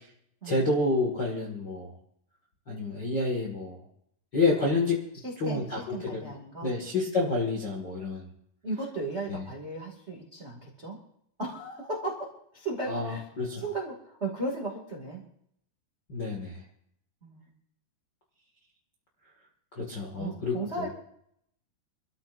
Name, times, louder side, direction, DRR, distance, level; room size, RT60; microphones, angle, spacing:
voice 1, 0.4-1.9 2.7-3.8 4.3-5.0 5.4-5.8 6.1-6.2 6.6-8.3 9.3-9.4 12.9-13.6 16.1-16.6 19.8-20.8, left 3 dB, 40° left, -3 dB, 1.6 m, -28 dB
voice 2, 5.1-6.7 8.6-11.0 11.4-13.3 13.5-15.2 17.2-17.5 20.2-20.9, right 2 dB, 25° right, -1 dB, 1.5 m, -36 dB
27.5 x 13.5 x 2.6 m, 0.72 s
omnidirectional pair, 5.1 m